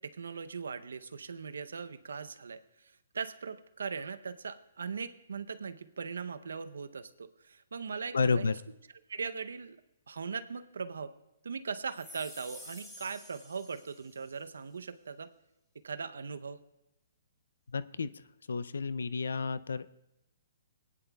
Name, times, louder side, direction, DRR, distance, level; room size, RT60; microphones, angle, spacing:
voice 1, 0.0-2.6 3.1-8.5 9.1-9.8 10.1-11.1 11.4-15.3 15.8-16.6, right 5 dB, 85° right, 11 dB, 0.7 m, -39 dB
voice 2, 8.1-8.5 17.7-18.2 18.5-19.9, left 4 dB, 85° left, 16 dB, 0.4 m, -31 dB
sound 1, 11.9-14.4, left 1 dB, 5° left, 1.3 m, -51 dB
19.0 x 10.0 x 2.3 m, 0.90 s
hypercardioid pair, 150°, 0 cm